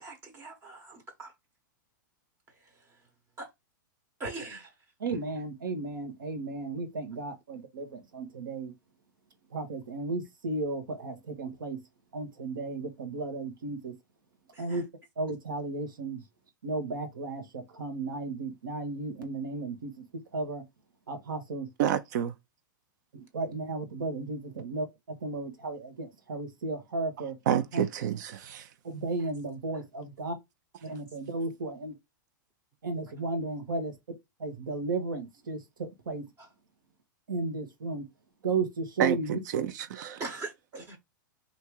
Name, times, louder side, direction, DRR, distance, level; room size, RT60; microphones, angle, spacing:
voice 1, 0.0-1.3 3.4-3.5 4.2-4.7 14.5-14.8 30.9-31.0 40.2-41.0, right 3 dB, 25° right, 1.1 m, -41 dB
voice 2, 5.0-8.7 9.5-11.8 12.1-13.9 14.6-14.8 15.2-16.2 16.6-19.9 20.3-20.6 21.1-21.7 23.1-24.9 25.2-27.4 27.7-27.8 28.8-30.4 30.8-31.9 32.8-33.9 34.4-36.2 37.3-38.0 38.4-39.4, right 3 dB, 85° right, 1.3 m, -34 dB
voice 3, 21.8-22.3 27.5-28.7 39.0-40.2, right 9 dB, 60° right, 0.7 m, -29 dB
3.5 x 2.8 x 4.5 m
hypercardioid pair, 125°, 11 cm